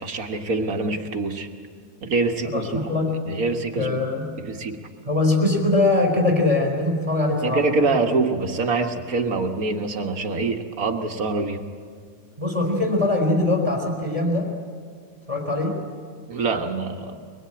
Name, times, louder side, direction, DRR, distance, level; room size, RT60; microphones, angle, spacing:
voice 1, 0.0-1.5 2.0-2.8 3.3-4.0 4.4-4.8 7.4-11.6 16.3-17.2, right 3 dB, 70° right, 4 dB, 1.8 m, -25 dB
voice 2, 2.5-3.2 3.8-4.3 5.1-7.9 12.4-14.5 15.3-15.8, left 2 dB, 20° right, 2 dB, 3.7 m, -22 dB
23.0 x 21.5 x 8.7 m, 2.1 s
omnidirectional pair, 1.6 m